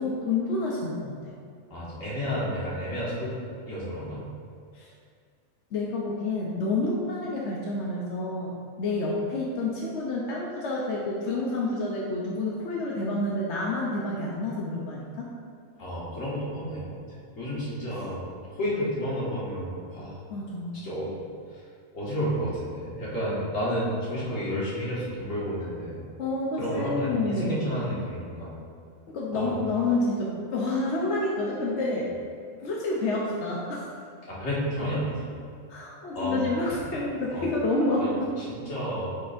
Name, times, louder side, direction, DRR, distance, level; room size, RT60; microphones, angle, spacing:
voice 1, 0.0-1.3 4.7-4.9 5.7-8.5 8.8-15.3 20.3-20.8 26.2-27.6 29.1-32.1 32.6-33.9 35.7-38.3, left 2 dB, 65° left, -4 dB, 1.0 m, -29 dB
voice 2, 1.7-3.3 3.7-4.3 15.8-17.0 17.4-20.2 20.8-21.1 21.9-26.0 26.5-28.6 29.3-29.5 34.3-35.3 36.1-36.5 37.3-37.5 38.0-38.1 38.4-39.1, equal, 80° left, -8 dB, 2.0 m, -31 dB
9.3 x 4.3 x 2.5 m, 2.1 s
omnidirectional pair, 1.3 m